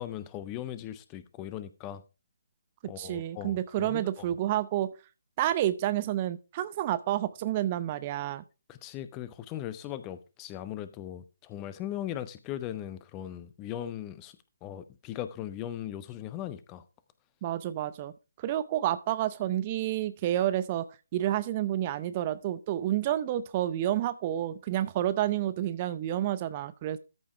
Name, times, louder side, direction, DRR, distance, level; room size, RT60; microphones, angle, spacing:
voice 1, 0.0-2.0 2.8-4.2 8.7-14.3 14.6-16.8, left 11 dB, 20° left, 0.7 m, -39 dB
voice 2, 3.0-4.9 5.4-8.4 17.4-18.1 18.4-20.9 21.1-27.0, right 12 dB, 25° right, 0.7 m, -29 dB
13.5 x 5.5 x 4.6 m
figure-of-eight pair, 140°, 0 cm